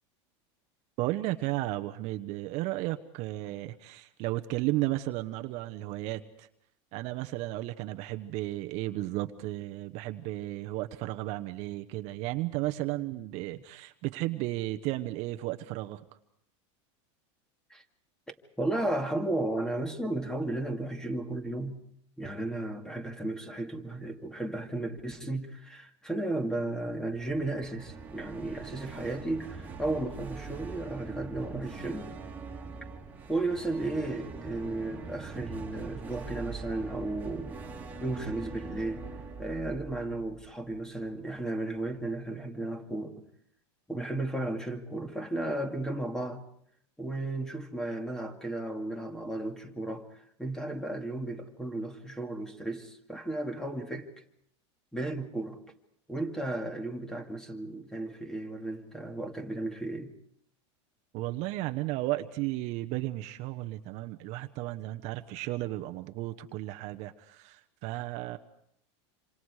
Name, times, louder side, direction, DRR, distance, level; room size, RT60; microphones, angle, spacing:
voice 1, 1.0-6.5 6.9-16.0 61.1-68.4, right 17 dB, 50° right, 1.0 m, -34 dB
voice 2, 18.6-21.8 22.2-32.1 33.3-37.5 38.0-39.1 39.4-43.2 43.9-46.4 47.0-50.1 50.4-54.1 54.9-55.6 56.1-60.1, right 2 dB, 5° left, 2.2 m, -34 dB
sound 1, 27.1-41.1, right 4 dB, 10° right, 2.7 m, -43 dB
27.0 x 26.5 x 4.9 m
supercardioid pair, 140°, 15 cm